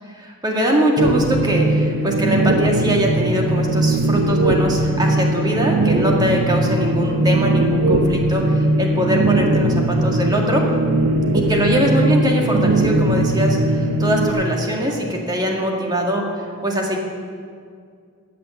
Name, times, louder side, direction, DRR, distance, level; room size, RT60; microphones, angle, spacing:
voice 1, 0.2-10.7 11.3-17.0, equal, 20° right, 0 dB, 1.9 m, -22 dB
sound 1, 1.0-14.3, right 2 dB, 60° right, 1.4 m, -19 dB
15.0 x 6.8 x 9.8 m, 2.2 s
head